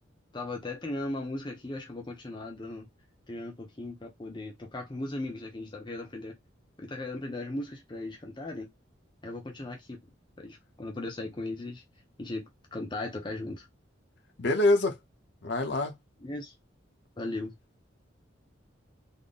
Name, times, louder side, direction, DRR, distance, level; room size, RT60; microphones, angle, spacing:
voice 1, 0.3-2.9 3.3-6.4 6.8-8.7 9.2-10.0 10.4-11.8 12.2-13.7 16.2-16.5 17.2-17.5, left 2 dB, 25° left, 0.7 m, -37 dB
voice 2, 14.4-15.0 15.4-15.9, left 2 dB, 60° left, 0.8 m, -25 dB
3.6 x 2.1 x 3.9 m
head